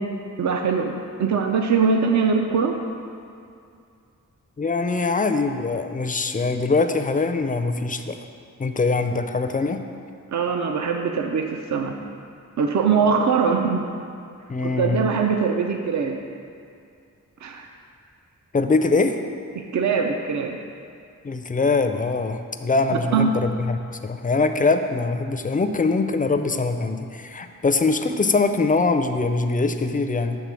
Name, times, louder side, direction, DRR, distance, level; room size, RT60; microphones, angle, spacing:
voice 1, 0.4-2.8 10.3-11.9 12.6-13.8 14.6-16.2 17.4-17.7 19.6-20.6 23.1-23.3, right 5 dB, 60° right, 3 dB, 0.5 m, -22 dB
voice 2, 4.6-8.2 8.6-9.8 14.5-15.0 18.5-19.2 21.2-30.4, left 3 dB, 25° left, 7 dB, 0.4 m, -23 dB
8.2 x 3.6 x 6.2 m, 2.4 s
wide cardioid pair, 105°, 32 cm